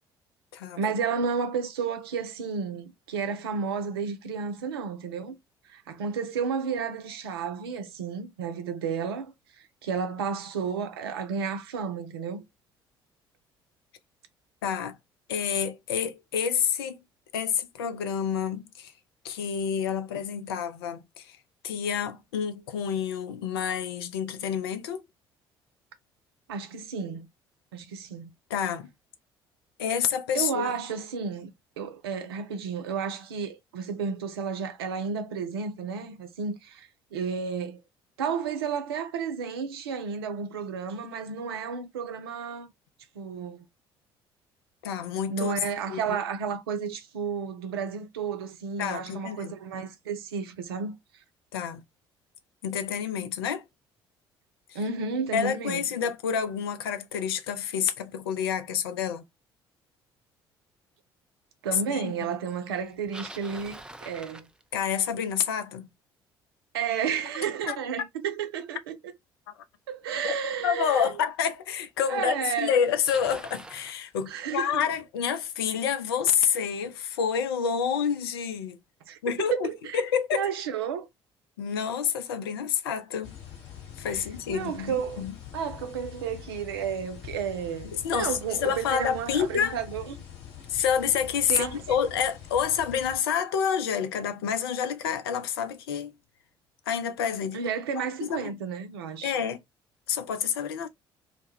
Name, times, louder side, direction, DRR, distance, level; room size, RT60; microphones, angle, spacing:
voice 1, 0.8-5.3 5.7-9.3 9.8-12.4 26.5-27.3 27.7-28.3 30.3-31.5 31.8-37.8 38.2-42.7 43.2-43.6 45.3-50.9 54.7-55.8 61.6-64.5 66.7-69.0 69.9-71.1 72.1-72.8 74.3-74.8 79.1-80.0 80.3-81.1 84.5-85.3 85.5-90.2 91.5-91.8 97.5-99.3, right 6 dB, 75° right, 0.5 m, -32 dB
voice 2, 14.6-15.0 15.3-17.0 17.3-18.9 19.2-21.4 21.6-25.0 28.5-28.9 29.8-30.7 44.8-45.5 45.9-46.2 48.8-49.5 51.5-51.8 52.6-53.6 54.7-54.8 55.3-59.2 61.9-62.1 64.7-65.9 67.6-67.8 70.2-70.3 70.6-78.8 79.2-79.7 79.9-80.5 81.6-83.3 84.0-85.3 87.9-89.8 90.7-96.1 96.9-97.6 98.0-98.5 99.2-99.6 100.1-100.9, left 8 dB, 75° left, 0.4 m, -28 dB
Bicycle, 62.8-65.1 70.2-70.3 71.1-71.2 72.2-72.3 72.5-74.0, right 1 dB, 5° right, 0.3 m, -45 dB
sound 1, 83.2-93.2, left 9 dB, 60° left, 1.1 m, -45 dB
2.1 x 2.0 x 3.3 m
figure-of-eight pair, 50°, 13 cm